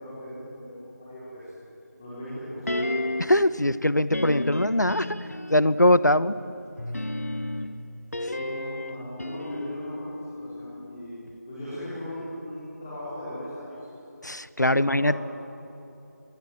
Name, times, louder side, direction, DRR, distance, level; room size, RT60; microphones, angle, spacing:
voice 1, 0.0-1.5 2.0-2.9 6.1-6.4 8.3-10.1 10.4-11.1 11.5-13.8 14.7-15.2, equal, 15° left, -11 dB, 4.9 m, -38 dB
sound 1, 2.7-3.5 4.1-5.8 6.8-11.0 11.3-11.4, left 1 dB, 55° left, 1.7 m, -32 dB
voice 2, 3.2-5.1 5.5-6.3 14.2-15.2, left 1 dB, 80° left, 16 dB, 1.1 m, -21 dB
26.0 x 23.0 x 9.3 m, 2.8 s
figure-of-eight pair, 170°, 9 cm